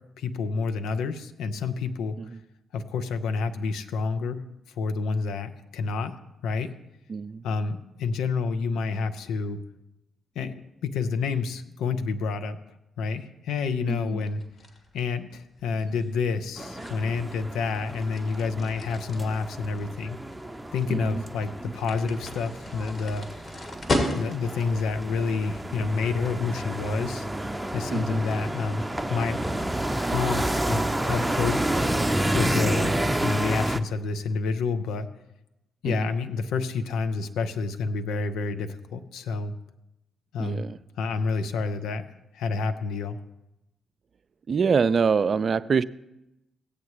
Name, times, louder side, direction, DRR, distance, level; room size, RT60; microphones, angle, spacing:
voice 1, 0.2-2.2 2.7-4.4 4.8-6.2 6.4-6.7 7.4-9.6 10.4-12.6 13.0-14.4 14.9-20.2 20.7-23.3 24.1-27.3 27.7-28.8 29.1-29.4 30.0-31.6 32.3-33.0 33.2-35.1 35.8-39.5 40.3-40.6 41.0-42.0 42.3-43.2, left 4 dB, 75° left, 0.6 m, -28 dB
voice 2, 7.1-7.4 13.9-14.2 20.9-21.2 27.9-28.2 35.8-36.1 40.4-40.8 44.5-45.8, right 5 dB, 50° right, 0.4 m, -25 dB
sound 1, 14.2-24.7, left 1 dB, 50° left, 2.3 m, -35 dB
sound 2, 16.6-33.8, right 1 dB, 10° right, 0.7 m, -30 dB
17.0 x 8.2 x 3.1 m
hypercardioid pair, 40°, 0 cm